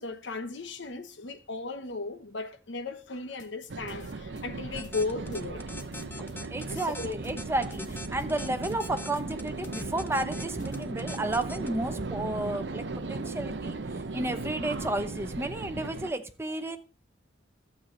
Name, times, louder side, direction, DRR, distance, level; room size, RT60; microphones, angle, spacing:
voice 1, 0.0-5.6 6.7-7.1 16.7-16.8, left 3 dB, 75° left, 1.1 m, -36 dB
sound 1, 3.4-10.8, left 2 dB, 40° left, 2.0 m, -53 dB
sound 2, 3.7-16.1, right 3 dB, 65° right, 0.7 m, -37 dB
sound 3, 4.8-11.7, left 2 dB, 10° left, 0.6 m, -42 dB
voice 2, 6.5-13.7 14.1-16.8, right 2 dB, 15° right, 0.9 m, -32 dB
12.5 x 7.5 x 3.9 m
head